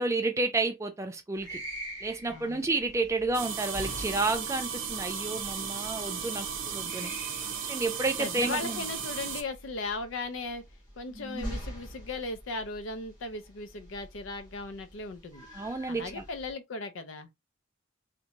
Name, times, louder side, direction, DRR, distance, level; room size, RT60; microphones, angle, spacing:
voice 1, 0.0-1.6 2.0-7.1 7.7-8.8 11.2-11.6 15.5-16.2, right 3 dB, 15° right, 0.4 m, -31 dB
sound 1, 1.4-16.5, right 1 dB, 20° left, 1.1 m, -45 dB
voice 2, 2.3-2.7 8.2-10.6 11.0-15.5 15.9-17.3, left 3 dB, 75° left, 0.5 m, -37 dB
sound 2, 3.3-9.4, right 7 dB, 80° right, 0.6 m, -35 dB
2.6 x 2.2 x 2.8 m
head